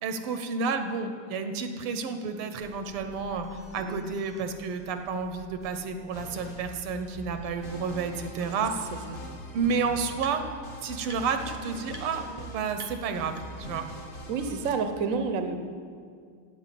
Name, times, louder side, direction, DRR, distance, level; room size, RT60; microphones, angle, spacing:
voice 1, 0.0-8.9 9.5-10.5 10.8-13.9, right 5 dB, 90° right, 8 dB, 1.7 m, -31 dB
sound 1, 2.6-8.0, left 1 dB, 75° left, 2.8 m, -52 dB
sound 2, 6.1-14.8, equal, 40° left, 0.8 m, -42 dB
sound 3, 6.7-6.8 7.4-7.5 8.8-8.9 9.1-10.7 11.0-11.5 11.9-12.0 12.3-12.4 12.7-13.8, right 1 dB, 45° right, 0.5 m, -48 dB
voice 2, 14.3-15.6, right 5 dB, 60° right, 7 dB, 0.8 m, -29 dB
9.3 x 8.1 x 8.3 m, 2.2 s
omnidirectional pair, 2.3 m